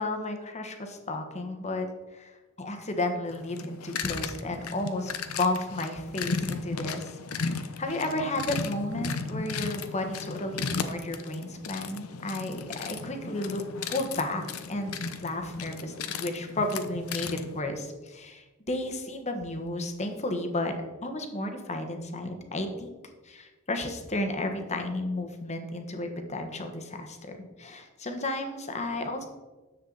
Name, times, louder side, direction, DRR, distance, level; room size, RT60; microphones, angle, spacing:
voice 1, 0.0-1.9 2.1-2.3 2.6-13.6 13.9-14.4 14.7-14.9 15.2-20.7 21.0-22.9 23.3-27.2 27.6-29.3, left 2 dB, 30° left, 5 dB, 1.2 m, -33 dB
sound 1, 3.3-17.6, left 4 dB, 90° left, 0.7 m, -36 dB
10.0 x 7.6 x 4.0 m, 1.2 s
head